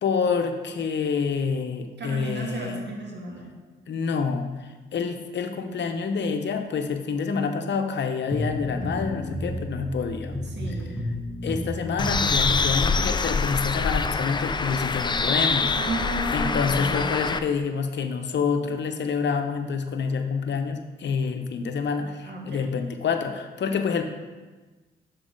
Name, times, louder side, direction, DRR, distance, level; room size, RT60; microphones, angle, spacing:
voice 1, 0.0-2.8 3.9-10.3 11.4-15.7 16.3-24.0, left 5 dB, 60° left, 7 dB, 0.7 m, -27 dB
voice 2, 2.0-3.5 10.4-11.0 15.7-17.3 22.2-22.7, right 2 dB, 60° right, -1 dB, 1.6 m, -34 dB
sound 1, 8.3-13.6, equal, 5° left, 1.0 m, -32 dB
Bird, 12.0-17.4, left 4 dB, 20° left, 0.4 m, -25 dB
6.1 x 4.0 x 5.1 m, 1.3 s
supercardioid pair, 50°, 21 cm